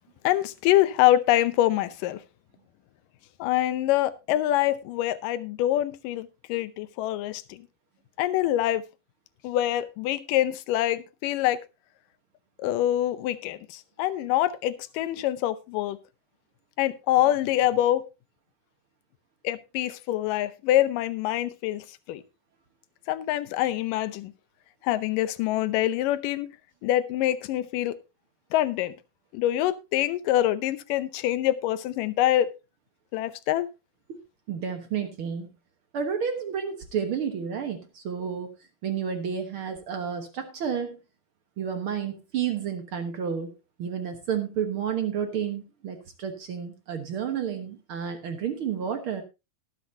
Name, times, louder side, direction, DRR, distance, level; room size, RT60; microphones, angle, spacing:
voice 1, 0.2-2.2 3.4-7.6 8.2-8.8 9.4-11.6 12.6-16.0 16.8-18.0 19.4-22.2 23.1-24.3 24.8-26.5 26.8-28.0 28.5-28.9 29.3-32.5 33.1-33.7, left 13 dB, 75° left, 2.2 m, -25 dB
voice 2, 34.5-35.5 35.9-38.5 38.8-41.0 41.6-43.5 43.8-49.2, right 7 dB, 80° right, 1.2 m, -31 dB
19.5 x 8.1 x 2.7 m
omnidirectional pair, 4.3 m